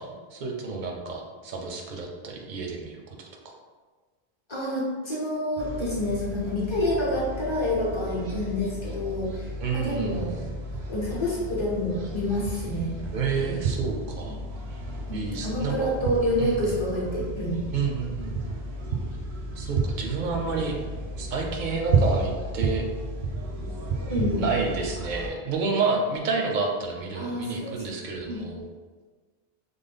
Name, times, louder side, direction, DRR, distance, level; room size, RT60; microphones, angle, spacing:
voice 1, 0.0-3.2 9.6-10.3 13.1-14.4 15.1-15.9 16.4-16.6 17.7-18.6 19.6-20.8 21.2-22.8 24.4-28.7, right 4 dB, 60° right, 1 dB, 0.6 m, -29 dB
voice 2, 4.5-10.3 10.9-12.9 13.4-13.6 14.3-14.4 15.1-17.6 24.1-24.4 27.1-28.0 28.2-28.4, left 1 dB, 30° left, -6 dB, 0.7 m, -28 dB
sound 1, 5.6-25.3, right 3 dB, 85° right, 0.9 m, -32 dB
3.4 x 2.0 x 3.4 m, 1.4 s
omnidirectional pair, 1.1 m